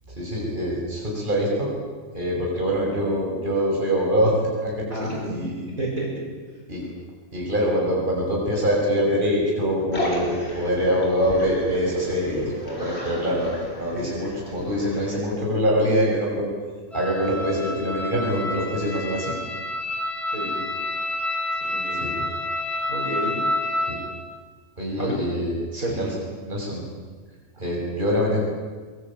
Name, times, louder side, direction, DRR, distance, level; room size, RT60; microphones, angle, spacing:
voice 1, 0.2-1.7 2.1-4.3 4.6-5.6 6.7-6.8 7.3-16.5 16.9-19.4 21.9-22.1 23.9-24.0 24.8-25.5 25.9-26.1 26.4-26.8 27.6-28.4, equal, 30° right, -3 dB, 6.5 m, -24 dB
voice 2, 4.9-6.1 20.3-20.6 21.6-22.0 22.9-23.3 25.0-25.1 25.7-26.1, right 1 dB, 65° right, -3 dB, 7.8 m, -30 dB
sound 1, 9.9-15.2, left 1 dB, 45° left, 5.5 m, -34 dB
sound 2, 16.9-24.0, left 1 dB, ahead, 4.5 m, -28 dB
24.5 x 22.5 x 8.7 m, 1.4 s
omnidirectional pair, 1.6 m